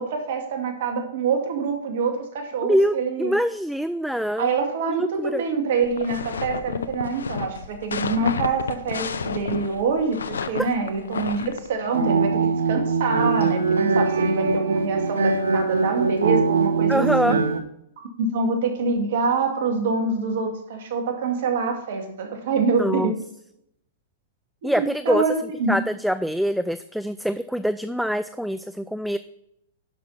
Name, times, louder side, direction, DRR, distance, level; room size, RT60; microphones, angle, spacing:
voice 1, 0.0-3.3 4.4-17.4 18.0-23.1 24.6-25.3 25.6-25.8, right 4 dB, 60° right, 4 dB, 2.3 m, -25 dB
voice 2, 2.6-4.5 4.9-5.4 16.9-17.4 22.8-23.1 24.6-25.2 25.7-29.2, equal, ahead, 11 dB, 0.4 m, -24 dB
sound 1, 5.8-11.7, left 6 dB, 85° left, 0.7 m, -31 dB
sound 2, 11.8-17.6, right 4 dB, 85° right, 1.2 m, -22 dB
11.0 x 6.0 x 4.2 m, 0.77 s
hypercardioid pair, 120°, 0 cm